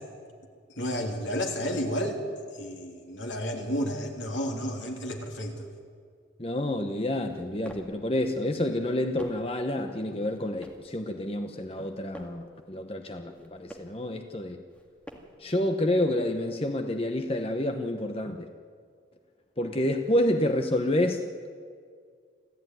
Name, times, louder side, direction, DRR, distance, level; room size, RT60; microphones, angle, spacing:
voice 1, 0.7-2.2 2.6-5.7, equal, 80° left, 2 dB, 3.2 m, -31 dB
voice 2, 6.4-14.6 15.4-18.5 19.6-21.5, left 1 dB, 30° left, 5 dB, 1.0 m, -28 dB
sound 1, 7.2-8.0 8.7-9.6 10.2-10.9 11.6-12.5 13.2-14.0 14.7-15.5, equal, 5° left, 2.0 m, -48 dB
26.5 x 15.0 x 9.4 m, 2.1 s
head